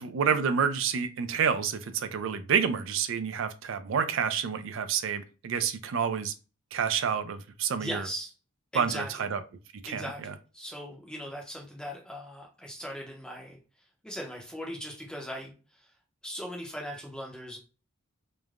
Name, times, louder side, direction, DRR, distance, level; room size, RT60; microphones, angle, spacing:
voice 1, 0.0-6.3 6.7-8.1 8.7-9.4 9.8-10.3, right 7 dB, 65° right, 10 dB, 0.4 m, -29 dB
voice 2, 7.8-8.3 8.7-9.1 9.9-13.6 14.0-15.5 16.2-17.6, equal, 5° left, 0 dB, 0.5 m, -39 dB
3.2 x 2.1 x 2.4 m, 0.33 s
head